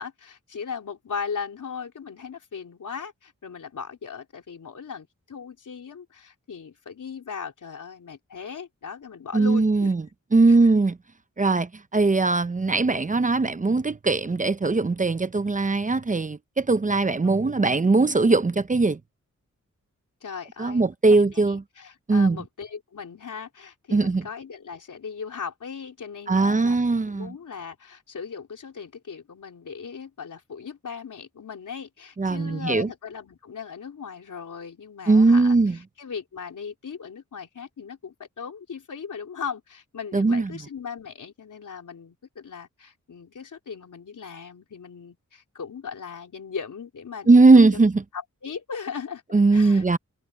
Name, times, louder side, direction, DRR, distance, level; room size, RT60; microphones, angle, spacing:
voice 1, 0.0-9.9 10.5-10.7 17.4-17.5 20.2-47.5 48.1-49.2 49.5-50.0, left 6 dB, 85° left, 3.9 m, -38 dB
voice 2, 9.3-10.0 10.3-11.0 11.4-19.0 20.6-21.6 22.1-22.4 23.9-24.2 26.3-27.3 32.2-32.9 35.1-35.8 40.1-40.5 47.3-48.0 49.3-50.0, right 3 dB, 25° right, 0.6 m, -20 dB
wide cardioid pair, 115°, 30 cm